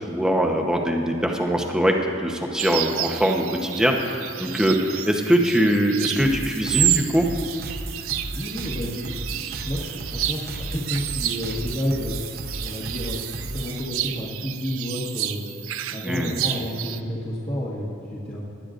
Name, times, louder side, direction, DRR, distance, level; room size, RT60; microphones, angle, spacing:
voice 1, 0.1-7.3 16.0-16.3, equal, 5° right, 1 dB, 0.9 m, -22 dB
sound 1, 2.6-17.0, right 13 dB, 85° right, 0.5 m, -31 dB
sound 2, 6.2-13.8, right 1 dB, 50° right, 0.9 m, -35 dB
voice 2, 8.3-12.2 12.6-15.5 15.9-18.4, equal, 30° left, -7 dB, 1.5 m, -30 dB
20.5 x 12.0 x 2.5 m, 2.9 s
head